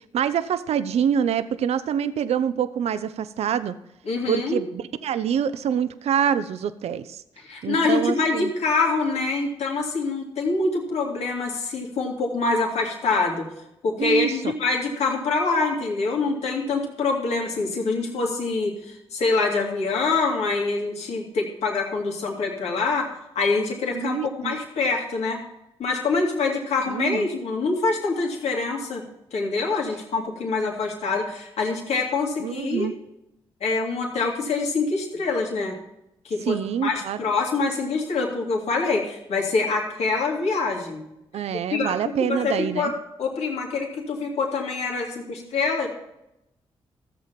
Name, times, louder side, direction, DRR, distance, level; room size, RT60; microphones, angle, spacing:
voice 1, 0.1-3.7 4.3-7.2 7.6-8.5 14.0-14.5 23.9-24.6 26.9-27.3 32.4-32.9 36.4-37.2 41.3-42.9, right 8 dB, 75° right, 13 dB, 0.6 m, -26 dB
voice 2, 4.1-4.6 7.4-13.5 13.8-25.4 25.8-29.0 29.3-32.9 33.6-35.8 36.2-41.0 41.7-42.9 43.2-45.9, left 3 dB, 75° left, 0 dB, 2.4 m, -25 dB
14.0 x 7.5 x 5.8 m, 0.86 s
supercardioid pair, 50°, 11 cm